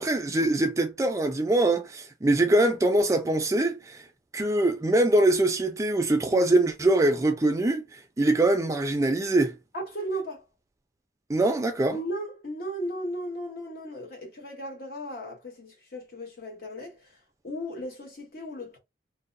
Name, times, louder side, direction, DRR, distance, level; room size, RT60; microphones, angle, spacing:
voice 1, 0.0-4.0 4.3-9.6 11.3-12.0, right 2 dB, 20° right, 0.4 m, -23 dB
voice 2, 9.7-10.4 11.9-17.1 17.4-18.8, equal, 55° left, 0.9 m, -36 dB
2.7 x 2.0 x 2.5 m
head